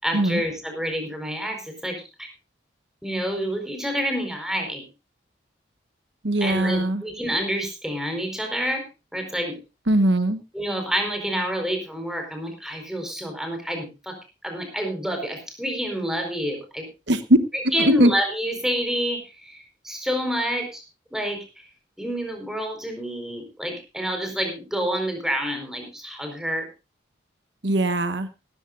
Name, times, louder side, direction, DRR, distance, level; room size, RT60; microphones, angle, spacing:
voice 1, 0.0-2.3 3.0-4.9 6.4-8.8 9.1-9.6 10.5-14.2 14.4-16.9 17.7-20.8 21.1-21.6 22.0-26.7, equal, 5° right, 4 dB, 4.6 m, -28 dB
voice 2, 6.2-7.0 9.9-10.4 17.1-17.4 17.8-18.1 27.6-28.3, right 1 dB, 70° right, 10 dB, 1.1 m, -20 dB
18.0 x 14.0 x 2.6 m, 0.30 s
head